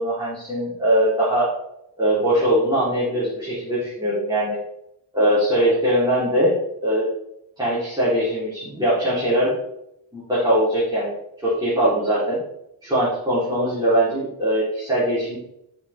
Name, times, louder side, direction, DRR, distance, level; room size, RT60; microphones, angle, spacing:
voice 1, 0.0-1.5 2.0-4.6 5.1-7.1 7.6-9.6 10.1-11.2 11.4-12.4 12.8-15.4, right 1 dB, 10° right, -10 dB, 3.7 m, -21 dB
11.5 x 6.3 x 3.6 m, 0.80 s
wide cardioid pair, 145°, 44 cm